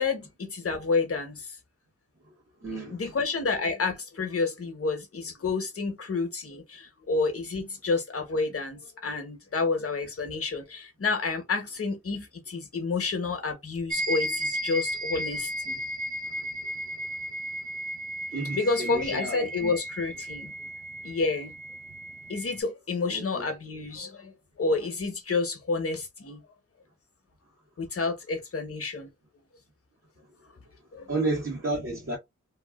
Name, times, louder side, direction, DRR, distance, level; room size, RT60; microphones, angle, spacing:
voice 1, 0.0-1.5 2.9-15.8 18.5-20.5 21.0-21.5 22.3-24.3 24.6-26.4 27.8-29.1 30.9-31.1, left 4 dB, 50° left, 1.0 m, -29 dB
voice 2, 2.6-3.0 15.1-15.2 16.3-16.5 18.3-19.7 23.0-23.5 31.1-32.2, right 2 dB, 45° right, 1.4 m, -32 dB
sound 1, 13.9-22.6, equal, 30° right, 0.5 m, -34 dB
3.2 x 2.4 x 2.3 m
wide cardioid pair, 105°, 29 cm